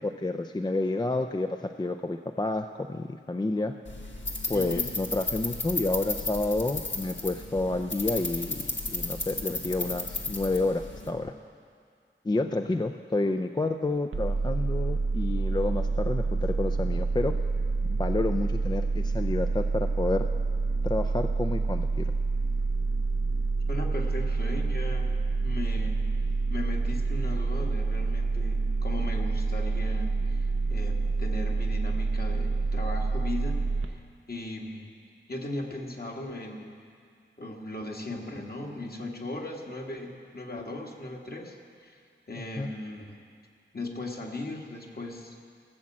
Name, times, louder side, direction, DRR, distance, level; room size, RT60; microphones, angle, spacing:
voice 1, 0.0-3.8 4.5-11.3 12.2-17.4 17.9-20.3 20.8-22.1 42.4-42.7, left 2 dB, 20° left, 5 dB, 0.4 m, -29 dB
sound 1, 3.8-11.1, left 2 dB, 65° left, 1.6 m, -34 dB
voice 2, 4.5-4.9 23.7-25.1 25.4-26.0 26.5-34.0 34.3-35.0 35.3-36.8 37.4-41.6 41.8-42.0 42.3-43.2 43.7-45.4, left 2 dB, 50° left, 0 dB, 1.7 m, -38 dB
sound 2, 14.1-33.9, right 3 dB, 80° right, 0.7 m, -27 dB
17.5 x 7.5 x 7.3 m, 2.2 s
wide cardioid pair, 80°, 21 cm